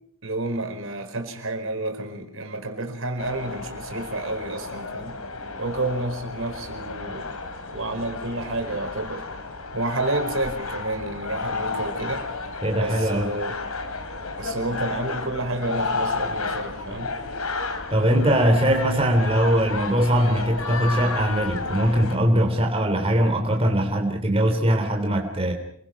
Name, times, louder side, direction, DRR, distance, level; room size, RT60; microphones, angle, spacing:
voice 1, 0.2-5.2 5.6-7.3 7.7-9.2 9.7-12.2 12.7-13.6 14.4-17.1, right 2 dB, 65° right, 5 dB, 4.7 m, -30 dB
sound 1, 3.2-22.2, left 3 dB, 90° left, 3.8 m, -32 dB
voice 2, 12.6-13.3 17.9-25.5, equal, 25° right, 3 dB, 3.3 m, -21 dB
29.0 x 23.0 x 6.0 m, 0.66 s
head